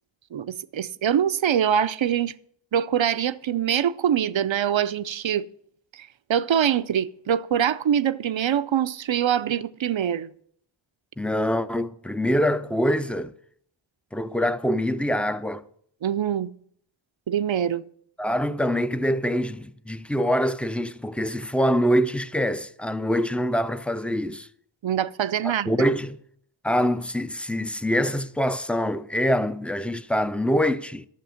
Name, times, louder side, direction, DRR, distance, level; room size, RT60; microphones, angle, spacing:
voice 1, 0.3-2.3 2.7-5.5 5.9-10.3 16.0-16.5 17.3-17.8 24.8-25.8, right 9 dB, 70° right, 0.6 m, -24 dB
voice 2, 11.2-13.3 14.1-15.6 18.2-24.5 25.4-26.2 26.6-31.1, equal, 5° left, 0.4 m, -24 dB
12.0 x 6.9 x 5.7 m
wide cardioid pair, 40°, 48 cm